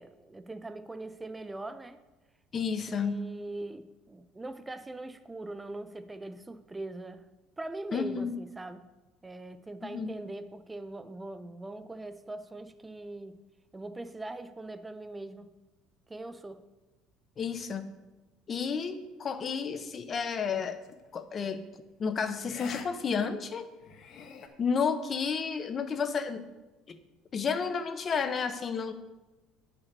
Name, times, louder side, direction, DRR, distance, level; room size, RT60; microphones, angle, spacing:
voice 1, 0.0-2.0 2.9-7.2 7.6-8.9 9.2-13.4 13.7-15.6 16.1-16.7, right 2 dB, 10° right, 10 dB, 0.5 m, -41 dB
voice 2, 2.5-3.2 7.9-8.3 9.8-10.1 17.4-17.9 18.5-20.8 21.1-21.6 22.0-23.7 24.6-26.4 26.9-27.0 27.3-28.9, left 6 dB, 30° left, 10 dB, 0.7 m, -31 dB
sound 1, 20.8-21.1 22.4-22.9 23.2-23.3 23.8-24.5, left 6 dB, 45° left, 1.0 m, -44 dB
9.3 x 5.9 x 6.7 m, 1.1 s
cardioid pair, 155°, 0 cm